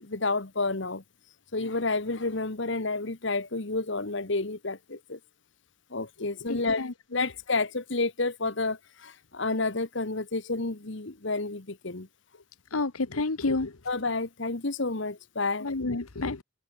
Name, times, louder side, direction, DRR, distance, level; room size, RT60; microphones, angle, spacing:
voice 1, 0.0-1.0 1.5-5.2 5.9-6.8 7.1-8.8 9.0-12.1 13.9-15.7, left 3 dB, 60° left, 1.4 m, -30 dB
voice 2, 6.2-7.2 12.7-13.7 15.6-16.4, left 3 dB, 90° left, 1.2 m, -30 dB
open air
head